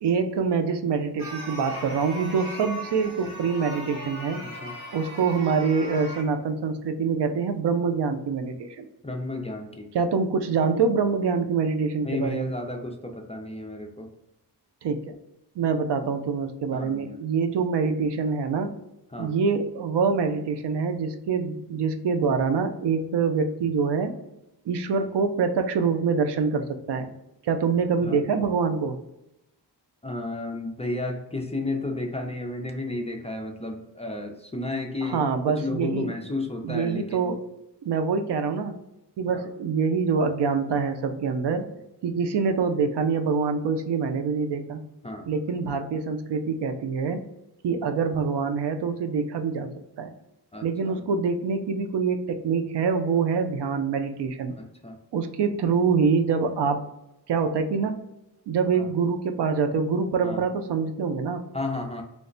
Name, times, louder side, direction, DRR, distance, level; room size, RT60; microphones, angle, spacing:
voice 1, 0.0-4.4 4.9-8.9 9.9-12.5 14.8-15.2 15.6-18.7 19.2-24.1 24.7-27.1 27.4-29.0 35.0-36.1 36.6-37.4 37.8-38.8 39.2-41.7 42.0-44.8 45.3-47.2 47.6-49.7 50.0-50.1 50.6-54.5 55.1-56.8 57.3-58.0 58.5-61.4, right 5 dB, 75° right, 7 dB, 0.5 m, -25 dB
sound 1, 1.2-6.2, equal, 25° right, 1.3 m, -38 dB
voice 2, 4.4-4.8 9.0-9.9 12.0-14.1 16.7-17.2 19.1-19.3 28.0-28.2 30.0-35.2 35.5-37.4 39.3-39.5 45.0-45.3 50.5-51.0 54.6-55.0 58.7-58.9 60.2-60.4 61.5-62.0, left 2 dB, 15° left, 2 dB, 0.4 m, -32 dB
3.2 x 2.1 x 3.8 m, 0.88 s
wide cardioid pair, 130°, 41 cm